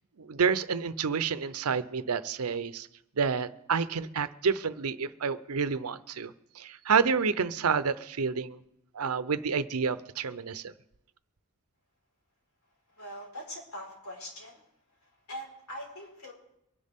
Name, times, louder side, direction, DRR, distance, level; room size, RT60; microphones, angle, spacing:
voice 1, 0.2-2.9 3.2-8.6 8.9-10.7, right 5 dB, 85° right, 14 dB, 0.7 m, -29 dB
voice 2, 12.9-14.7 15.0-16.3, equal, 85° left, -2 dB, 4.8 m, -42 dB
24.0 x 10.5 x 3.6 m, 0.83 s
head